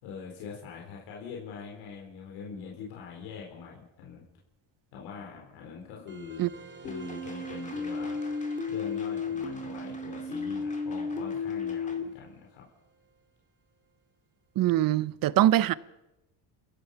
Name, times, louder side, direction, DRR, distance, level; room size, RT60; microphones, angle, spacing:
voice 1, 0.0-4.2 4.9-6.5 6.8-8.2 8.7-12.6, left 6 dB, 90° left, 4.5 m, -43 dB
sound 1, 6.1-13.2, right 4 dB, 25° right, 2.6 m, -51 dB
sound 2, 6.8-12.0, left 4 dB, 15° left, 2.5 m, -33 dB
voice 2, 14.6-15.7, right 14 dB, 50° right, 0.6 m, -23 dB
30.0 x 15.5 x 5.7 m
cardioid pair, 135°, 46 cm